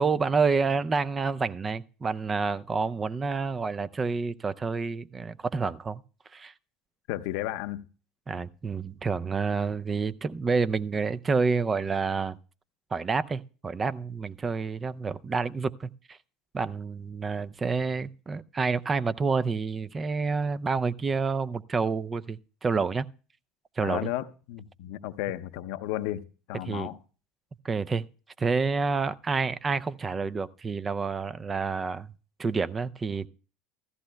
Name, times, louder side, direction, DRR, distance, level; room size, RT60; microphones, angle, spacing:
voice 1, 0.0-6.0 6.3-6.5 8.3-12.4 12.9-16.2 16.5-23.1 23.8-24.1 26.6-26.9 27.6-28.1 28.4-32.1 32.4-33.3, right 4 dB, 25° right, 0.4 m, -28 dB
voice 2, 7.1-7.8 23.8-27.0, left 14 dB, 70° left, 0.6 m, -33 dB
15.5 x 14.0 x 2.2 m
hypercardioid pair, 80°, 0 cm